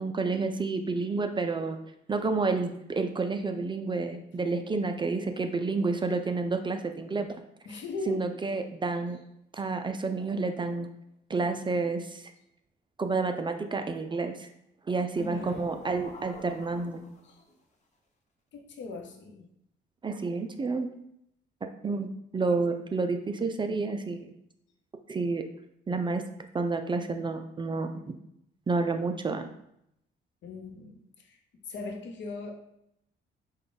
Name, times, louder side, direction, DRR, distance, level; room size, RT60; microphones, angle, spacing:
voice 1, 0.0-1.8 2.1-7.3 7.7-7.8 8.1-9.2 9.5-10.9 11.3-12.3 13.0-14.5 14.9-17.0 20.0-20.9 21.8-22.1 22.3-24.3 25.1-25.5 25.9-26.3 26.5-27.9 28.7-29.5, right 3 dB, 25° right, 6 dB, 0.4 m, -30 dB
voice 2, 7.6-8.2 15.3-16.0 17.2-17.4 18.5-19.5 30.4-31.4 31.7-32.6, left 2 dB, 65° left, 4 dB, 0.8 m, -39 dB
sound 1, 15.1-17.5, left 2 dB, 35° left, 0.9 m, -44 dB
5.1 x 2.3 x 3.8 m, 0.77 s
cardioid pair, 90°, 20 cm